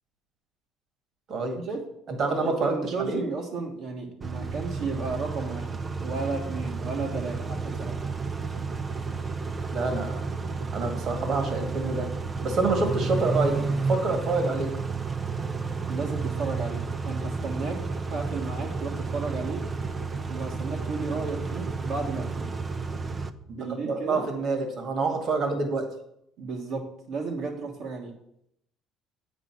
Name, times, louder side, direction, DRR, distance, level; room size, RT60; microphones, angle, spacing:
voice 1, 1.3-1.6 2.2-3.2 9.7-10.3 10.7-12.1 12.4-13.6 13.9-14.7 23.8-25.9, right 3 dB, 50° right, 4 dB, 1.8 m, -27 dB
voice 2, 2.2-7.9 15.9-19.7 20.3-22.5 23.5-24.3 26.4-28.1, right 4 dB, 65° right, -2 dB, 1.6 m, -33 dB
Car / Idling / Accelerating revving vroom, 4.2-23.3, right 4 dB, 30° right, 0.6 m, -31 dB
8.3 x 5.3 x 6.0 m, 0.75 s
supercardioid pair, 100°, 0 cm